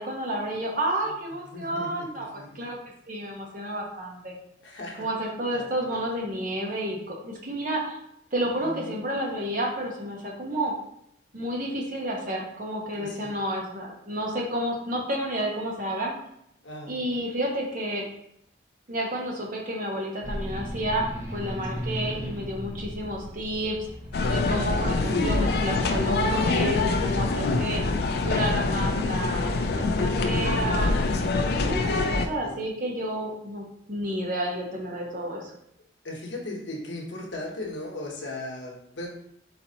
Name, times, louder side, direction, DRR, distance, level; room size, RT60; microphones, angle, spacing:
voice 1, 0.0-2.3 2.5-2.8 3.1-4.4 5.0-8.0 8.3-10.7 11.3-16.1 16.9-18.0 18.9-21.0 21.3-23.8 24.3-27.8 28.2-31.0 31.4-35.5, right 1 dB, 45° right, -1 dB, 0.9 m, -30 dB
voice 2, 1.0-2.7 4.6-5.1 5.5-6.0 8.6-9.0 12.9-13.3 16.6-17.0 21.7-21.9 31.5-32.1 32.4-32.6 36.0-39.1, left 2 dB, 75° left, -1 dB, 1.0 m, -38 dB
sound 1, 20.2-30.2, equal, 15° right, 0.7 m, -38 dB
sound 2, 24.1-32.3, left 3 dB, 55° left, 0.4 m, -25 dB
4.1 x 4.1 x 2.8 m, 0.73 s
head